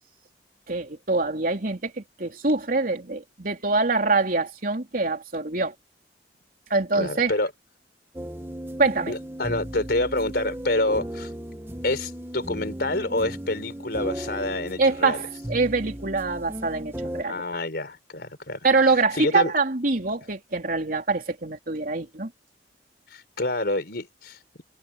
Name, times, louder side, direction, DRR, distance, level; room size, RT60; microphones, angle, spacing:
voice 1, 0.7-5.7 6.7-7.3 8.8-9.1 14.8-17.4 18.6-22.3, right 3 dB, 55° right, 3.3 m, -24 dB
voice 2, 7.0-7.5 9.1-11.3 11.8-15.2 17.3-18.6 19.1-19.5 23.1-24.6, left 2 dB, 65° left, 4.2 m, -27 dB
sound 1, 8.2-17.2, right 1 dB, 15° right, 1.5 m, -36 dB
head